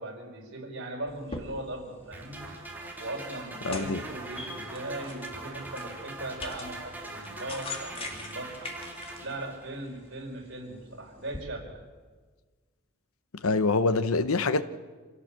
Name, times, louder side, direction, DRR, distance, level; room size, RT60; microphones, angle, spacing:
voice 1, 0.0-2.5 3.0-8.7 9.2-11.8, right 1 dB, 55° right, 5.0 m, -39 dB
sound 1, 1.1-11.4, left 2 dB, 25° left, 2.4 m, -44 dB
sound 2, 2.1-9.9, right 2 dB, 10° right, 3.2 m, -42 dB
voice 2, 3.6-4.0 13.4-14.6, left 3 dB, 90° left, 1.0 m, -25 dB
26.5 x 16.5 x 7.6 m
head